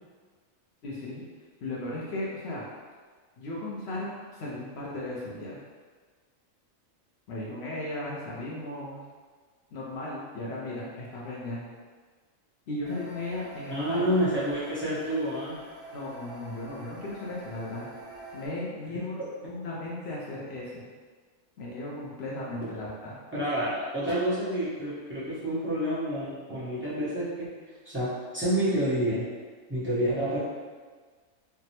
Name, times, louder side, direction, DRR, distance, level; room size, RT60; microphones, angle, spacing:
voice 1, 0.8-1.3 1.6-2.6 3.4-5.6 7.3-9.0 9.7-11.6 12.7-14.1 15.9-17.9 18.3-20.9 21.6-23.2, left 1 dB, 60° left, -5 dB, 0.7 m, -36 dB
sound 1, 12.8-18.5, right 1 dB, 55° right, 1.1 m, -46 dB
voice 2, 13.7-15.6 23.3-27.5 27.8-29.3 29.7-30.4, equal, 10° right, -12 dB, 0.8 m, -28 dB
3.3 x 2.0 x 2.8 m, 1.5 s
omnidirectional pair, 1.4 m